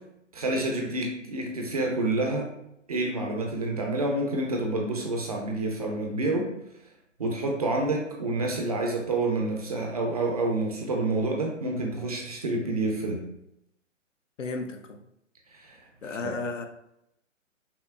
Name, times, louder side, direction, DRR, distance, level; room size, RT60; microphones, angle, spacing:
voice 1, 0.3-2.5 2.9-6.5 7.2-13.2 15.6-15.8 16.2-16.3, right 2 dB, 30° right, 1 dB, 0.5 m, -28 dB
voice 2, 14.4-15.0 16.0-16.6, left 3 dB, 75° left, 5 dB, 0.6 m, -33 dB
5.5 x 2.1 x 2.3 m, 0.81 s
figure-of-eight pair, 135°, 39 cm